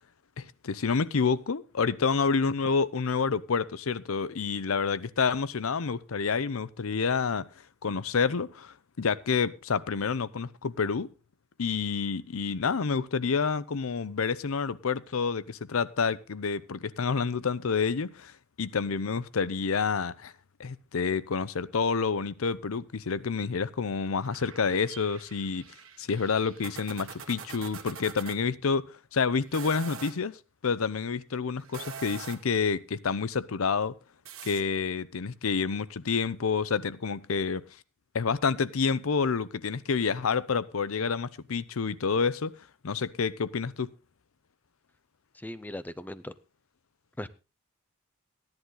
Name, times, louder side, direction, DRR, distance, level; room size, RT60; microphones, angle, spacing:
voice 1, 0.4-7.4 7.8-11.1 11.6-20.3 20.6-25.6 26.0-30.4 30.6-33.9 34.4-37.6 38.1-42.5 42.8-43.9, left 5 dB, 75° left, 0.6 m, -28 dB
sound 1, 24.2-28.4 29.4-30.2 31.6-32.6 34.2-34.6, right 6 dB, 70° right, 1.6 m, -44 dB
voice 2, 45.3-46.3 47.2-47.3, left 1 dB, 10° left, 0.5 m, -38 dB
14.5 x 10.5 x 3.9 m
head